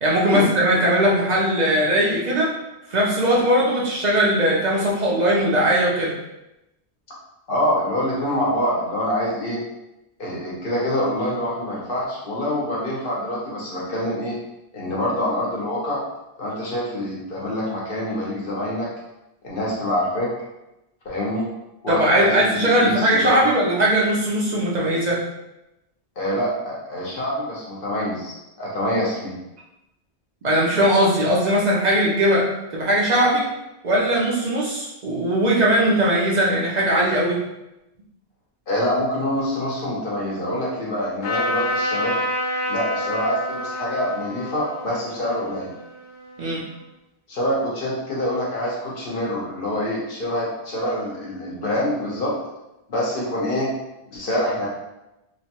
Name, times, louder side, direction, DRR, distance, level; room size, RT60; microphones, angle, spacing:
voice 1, 0.0-2.5 2.9-6.1 21.9-25.2 30.4-32.5 32.7-33.5 33.8-37.4 46.4-46.6, right 1 dB, 50° right, -4 dB, 0.5 m, -19 dB
voice 2, 7.5-9.6 10.2-14.3 14.7-16.0 16.4-18.9 19.4-20.3 21.0-21.5 21.8-23.4 26.2-29.3 38.7-42.2 42.7-45.7 47.3-52.3 52.9-53.7 54.1-54.7, equal, 55° left, -5 dB, 1.0 m, -25 dB
Trumpet, 41.2-46.7, left 1 dB, 80° left, 1.0 m, -28 dB
2.9 x 2.1 x 2.8 m, 0.93 s
omnidirectional pair, 1.1 m